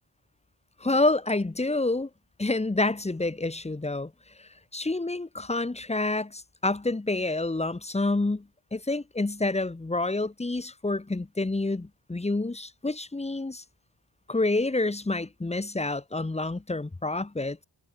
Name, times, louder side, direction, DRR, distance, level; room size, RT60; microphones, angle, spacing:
voice 1, 0.8-2.1 2.4-4.1 4.4-13.6 14.3-17.6, left 2 dB, 15° left, 0.9 m, -28 dB
wide cardioid pair, 165°, 45 cm